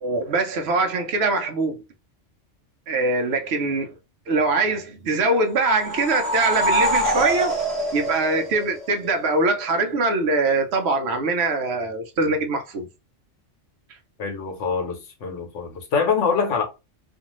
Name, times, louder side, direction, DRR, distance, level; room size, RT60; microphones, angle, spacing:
voice 1, 0.0-1.8 2.9-3.9 4.3-7.5 7.9-12.9, right 3 dB, 65° right, 0.8 m, -23 dB
sound 1, 5.6-9.1, right 1 dB, 30° right, 1.0 m, -24 dB
voice 2, 14.2-16.6, left 5 dB, 80° left, 1.1 m, -24 dB
2.5 x 2.4 x 2.9 m
omnidirectional pair, 1.3 m